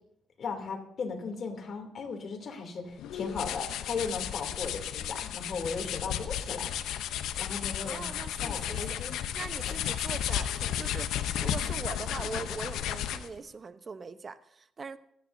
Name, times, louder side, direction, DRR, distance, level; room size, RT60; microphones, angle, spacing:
voice 1, 0.4-6.7 7.4-8.1 8.4-9.2 9.7-9.8, left 4 dB, 55° left, 3 dB, 2.9 m, -37 dB
sound 1, 3.0-13.4, left 10 dB, 85° left, 0.7 m, -33 dB
voice 2, 7.8-8.9 9.3-15.0, right 4 dB, 40° right, 12 dB, 0.8 m, -41 dB
26.0 x 10.0 x 2.7 m, 0.74 s
cardioid pair, 90°, 0 cm